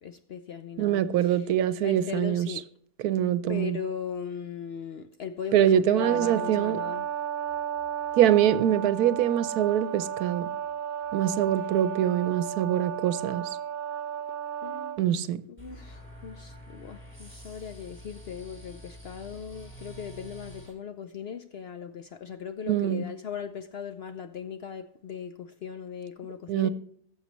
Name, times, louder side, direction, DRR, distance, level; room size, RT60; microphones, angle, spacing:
voice 1, 0.0-1.5 1.8-2.7 3.5-7.2 11.6-11.7 14.6-15.0 15.5-26.7, left 7 dB, 65° left, 0.6 m, -38 dB
voice 2, 0.8-2.5 3.0-3.8 5.5-6.8 8.2-10.5 11.1-13.4 15.0-15.4 22.7-23.0 26.5-26.7, right 11 dB, 85° right, 1.1 m, -24 dB
Brass instrument, 6.0-15.0, right 9 dB, 15° right, 0.5 m, -33 dB
sound 1, 15.6-20.7, equal, 5° left, 4.9 m, -47 dB
17.0 x 7.2 x 3.0 m
omnidirectional pair, 1.6 m